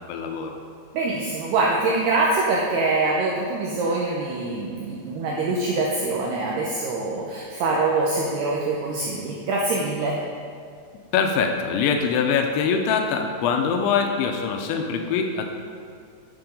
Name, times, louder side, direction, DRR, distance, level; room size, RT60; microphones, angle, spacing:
voice 1, 0.1-0.6 11.1-15.5, left 6 dB, 85° left, 4 dB, 2.8 m, -23 dB
voice 2, 0.9-10.2, right 3 dB, 90° right, -3 dB, 2.3 m, -24 dB
9.4 x 6.9 x 5.3 m, 2.2 s
omnidirectional pair, 5.8 m